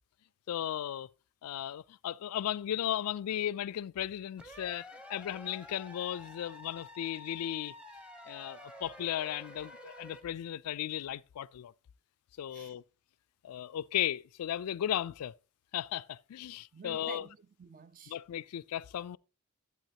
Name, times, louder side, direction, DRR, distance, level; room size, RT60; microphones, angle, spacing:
voice 1, 0.5-1.1 1.4-7.7 8.3-11.7 12.4-12.8 13.4-15.3 15.7-17.2 18.1-19.2, left 11 dB, 90° left, 0.3 m, -36 dB
sound 1, 4.4-10.2, left 1 dB, 5° right, 0.8 m, -50 dB
voice 2, 16.7-18.2, right 5 dB, 40° right, 0.4 m, -49 dB
12.0 x 8.0 x 2.8 m
head